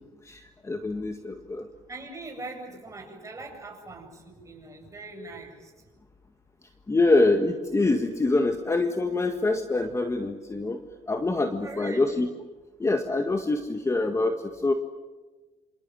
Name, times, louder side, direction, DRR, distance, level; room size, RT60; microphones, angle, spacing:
voice 1, 0.2-1.7 6.9-10.8 11.1-12.3 12.8-14.7, left 2 dB, 20° left, 6 dB, 1.7 m, -25 dB
voice 2, 1.9-5.7 11.6-12.1, right 2 dB, 20° right, 2 dB, 7.6 m, -41 dB
27.0 x 27.0 x 7.7 m, 1.2 s
cardioid pair, 115°, 15 cm